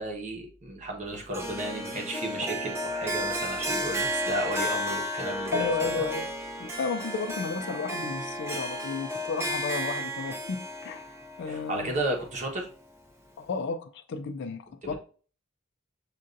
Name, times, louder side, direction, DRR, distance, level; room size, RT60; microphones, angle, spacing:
voice 1, 0.0-6.1 11.4-12.7 14.8-15.0, right 2 dB, 35° right, 1.0 m, -33 dB
Harp, 1.3-12.6, equal, 10° right, 0.6 m, -33 dB
voice 2, 5.5-6.3 6.6-11.1 11.4-11.9 13.4-15.0, left 4 dB, 50° left, 0.3 m, -33 dB
6.5 x 2.6 x 2.5 m
head